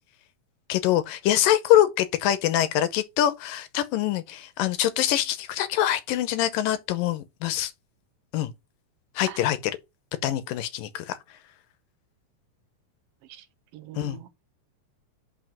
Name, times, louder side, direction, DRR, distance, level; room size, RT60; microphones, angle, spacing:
voice 1, 0.7-7.7 8.3-8.5 9.2-9.8 10.2-11.2 14.0-14.2, left 12 dB, 75° left, 2.3 m, -24 dB
voice 2, 13.7-14.3, right 13 dB, 80° right, 2.6 m, -42 dB
5.8 x 4.8 x 5.8 m
omnidirectional pair, 4.2 m